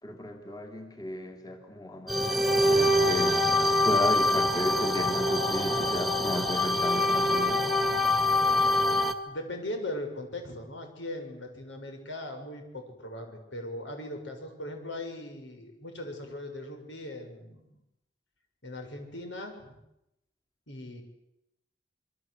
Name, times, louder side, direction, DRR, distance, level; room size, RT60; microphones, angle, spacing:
voice 1, 0.0-3.4 3.9-7.7, left 1 dB, 20° left, 3 dB, 2.6 m, -34 dB
sound 1, 2.1-9.1, left 1 dB, ahead, 1.8 m, -25 dB
voice 2, 9.2-17.7 18.6-19.8 20.7-21.0, left 1 dB, 80° left, 4 dB, 6.7 m, -39 dB
26.5 x 24.0 x 8.2 m, 0.87 s
head